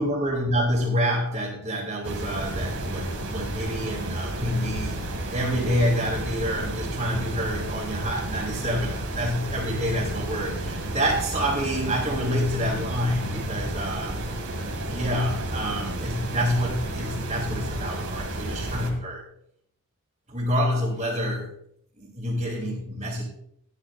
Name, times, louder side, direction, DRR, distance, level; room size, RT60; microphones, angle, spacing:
voice 1, 0.0-5.0 5.3-14.2 14.9-19.2 20.3-21.5 22.0-23.2, equal, 30° right, -7 dB, 3.1 m, -27 dB
sound 1, 2.0-18.9, right 1 dB, 90° right, 2.4 m, -32 dB
15.5 x 9.9 x 2.6 m, 0.71 s
head